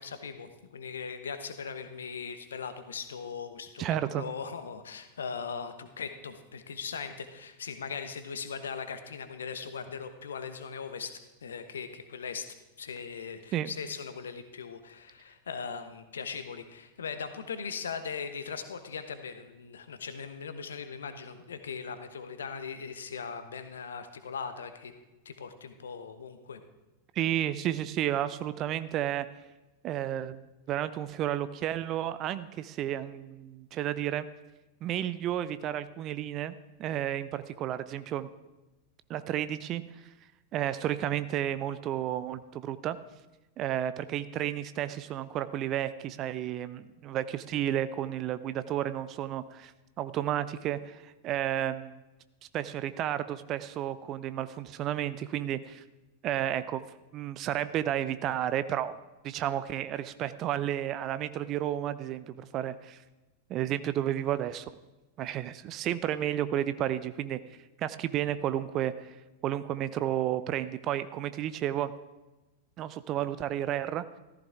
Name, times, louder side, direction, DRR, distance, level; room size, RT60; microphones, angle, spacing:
voice 1, 0.0-11.1 11.4-12.5 12.8-24.9 25.2-26.6, left 6 dB, 65° left, 9 dB, 1.1 m, -39 dB
voice 2, 3.8-4.2 13.5-13.7 27.2-29.3 29.8-34.3 34.8-38.3 39.1-39.8 40.5-43.0 43.6-49.7 50.0-52.0 52.5-55.8 56.2-56.8 57.1-58.9 59.2-63.0 63.5-64.6 65.2-67.4 67.8-68.9 69.4-71.9 72.8-74.0, right 11 dB, 35° right, 14 dB, 0.6 m, -32 dB
14.5 x 14.0 x 3.6 m, 1.1 s
figure-of-eight pair, 90°, 0 cm